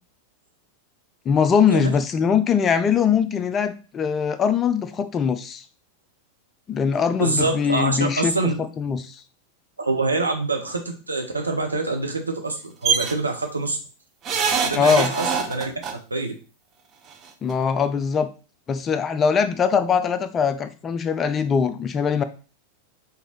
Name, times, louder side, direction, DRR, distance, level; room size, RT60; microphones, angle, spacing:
voice 1, 1.3-5.6 6.7-9.2 14.7-15.1 17.4-18.3 18.7-22.2, left 6 dB, 25° left, 11 dB, 0.4 m, -22 dB
voice 2, 7.2-8.5 9.8-13.8 14.6-15.7 16.1-16.3, right 3 dB, 80° right, 3 dB, 0.7 m, -25 dB
sound 1, 12.8-13.1 14.3-15.9 17.1-17.2 17.5-17.6, right 6 dB, 30° right, 0.6 m, -23 dB
4.5 x 2.6 x 3.1 m, 0.35 s
figure-of-eight pair, 90°, 0 cm